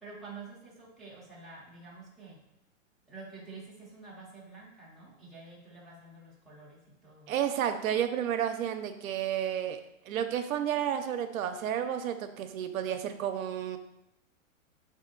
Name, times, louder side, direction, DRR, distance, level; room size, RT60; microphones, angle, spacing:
voice 1, 0.0-2.4 3.1-7.3, right 3 dB, ahead, -9 dB, 0.4 m, -48 dB
voice 2, 7.3-9.8 10.1-13.8, right 9 dB, 90° right, 8 dB, 0.5 m, -31 dB
3.5 x 2.6 x 3.7 m, 0.89 s
hypercardioid pair, 140°, 41 cm